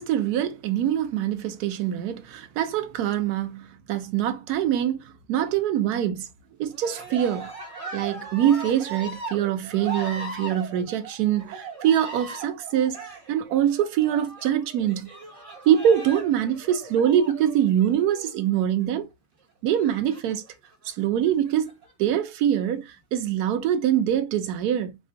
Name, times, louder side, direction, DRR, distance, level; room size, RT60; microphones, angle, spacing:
voice 1, 0.0-5.0 5.3-6.3 6.6-7.5 7.9-13.0 13.3-15.1 15.7-19.1 19.6-20.4 20.8-21.7 22.0-25.0, right 10 dB, 75° right, 1.1 m, -24 dB
Cheering, 6.7-18.4 19.7-20.5 21.3-21.9, right 3 dB, 25° right, 1.1 m, -39 dB
4.3 x 2.3 x 2.5 m
omnidirectional pair, 1.8 m